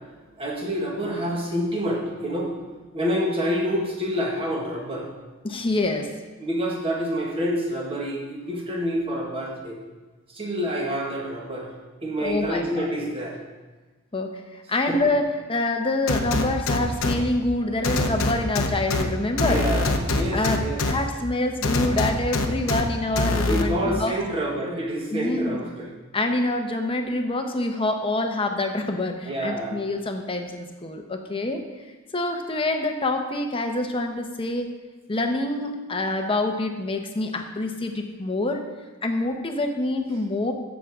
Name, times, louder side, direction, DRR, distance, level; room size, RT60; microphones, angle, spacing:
voice 1, 0.4-2.5 2.9-5.1 6.4-9.8 10.3-11.7 12.0-13.4 14.7-15.0 19.4-20.8 23.4-25.9 29.3-29.8, equal, 25° right, -2 dB, 1.7 m, -27 dB
voice 2, 5.4-6.1 12.2-12.9 14.1-15.2 15.5-19.6 20.3-24.1 25.1-25.6 26.1-31.6 32.1-34.7 35.1-38.6 39.0-40.5, left 2 dB, 25° left, 4 dB, 0.9 m, -26 dB
sound 1, 16.1-17.1 17.8-19.0 19.4-20.9 21.6-22.8 23.2-23.6, left 3 dB, 70° left, 0.8 m, -23 dB
14.0 x 6.2 x 3.7 m, 1.3 s
head